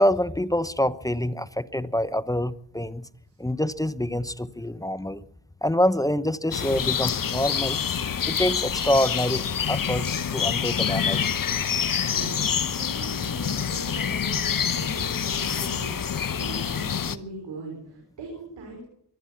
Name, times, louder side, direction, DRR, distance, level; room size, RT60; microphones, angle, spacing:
voice 1, 0.0-3.1 3.4-5.2 5.6-7.8 8.3-11.4, left 1 dB, 10° left, 14 dB, 0.9 m, -26 dB
sound 1, 6.5-17.2, left 7 dB, 50° left, 1.1 m, -27 dB
voice 2, 12.0-18.8, right 2 dB, 90° right, 0 dB, 5.2 m, -40 dB
23.5 x 9.9 x 6.0 m, 0.69 s
cardioid pair, 55°, 42 cm